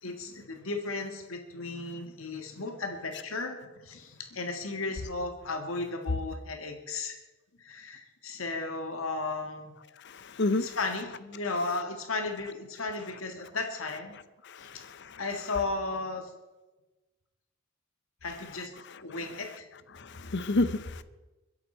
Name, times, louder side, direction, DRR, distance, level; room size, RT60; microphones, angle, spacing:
voice 1, 0.0-3.6 3.8-7.2 7.6-9.7 10.6-14.1 14.6-14.9 15.2-16.3 18.2-18.7 19.0-19.7 20.2-20.6, left 3 dB, 90° left, 5 dB, 1.8 m, -35 dB
voice 2, 10.0-10.8 14.5-15.2 19.9-21.0, left 2 dB, 60° left, 15 dB, 0.8 m, -30 dB
22.0 x 11.0 x 4.5 m, 1.1 s
head